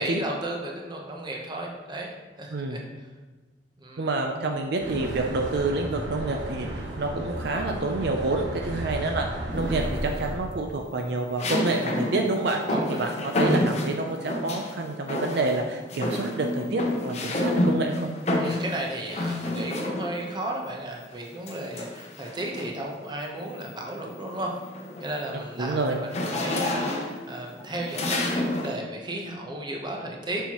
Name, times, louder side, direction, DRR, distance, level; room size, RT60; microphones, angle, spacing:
voice 1, 0.0-2.1 2.4-2.8 3.8-4.1 12.7-13.3 18.4-24.5 25.0-30.4, right 1 dB, 25° right, 0 dB, 0.9 m, -34 dB
voice 2, 4.0-9.3 9.5-12.6 12.9-18.1 25.6-26.0, right 2 dB, 60° right, 2 dB, 0.5 m, -28 dB
sound 1, 4.8-10.4, right 1 dB, 80° right, 1.1 m, -34 dB
sound 2, 9.5-10.1 11.4-14.7 15.1-15.6 15.9-20.3 21.5-22.9 23.4-23.6 24.0-28.8, left 1 dB, 40° left, 0.8 m, -29 dB
6.9 x 5.7 x 3.0 m, 1.3 s
head